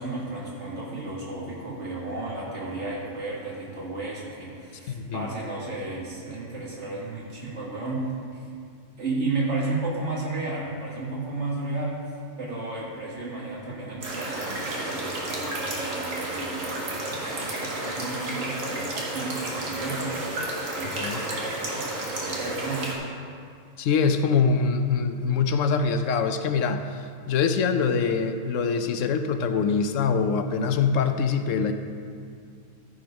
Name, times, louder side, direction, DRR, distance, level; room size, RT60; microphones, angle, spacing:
voice 1, 0.0-8.4 9.0-12.0 12.4-22.9, right 2 dB, 65° right, -5 dB, 2.4 m, -33 dB
voice 2, 4.9-5.3 20.8-21.2 23.8-27.0 27.3-31.7, left 5 dB, 80° left, 8 dB, 1.0 m, -24 dB
sound 1, 14.0-22.9, right 2 dB, 90° right, 1.9 m, -32 dB
13.5 x 5.2 x 5.2 m, 2.3 s
omnidirectional pair, 1.3 m